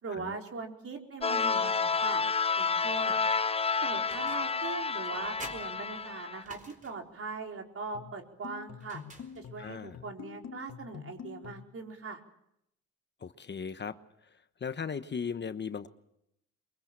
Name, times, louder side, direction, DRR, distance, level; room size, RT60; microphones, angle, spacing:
voice 1, 0.0-2.2 2.6-3.2 3.8-6.6 6.8-9.0 9.3-12.2, right 4 dB, 50° right, 2 dB, 4.5 m, -41 dB
sound 1, 1.2-6.4, left 5 dB, 20° left, 0.8 m, -30 dB
sound 2, 4.1-4.6 5.0-7.1 8.8-9.7, right 2 dB, 25° right, 4.3 m, -49 dB
sound 3, 7.9-11.8, left 8 dB, 55° left, 1.6 m, -46 dB
voice 2, 9.6-10.0 13.2-14.0 14.6-15.9, left 6 dB, 35° left, 10 dB, 1.1 m, -37 dB
23.5 x 22.5 x 7.5 m, 0.78 s
cardioid pair, 90°, 30 cm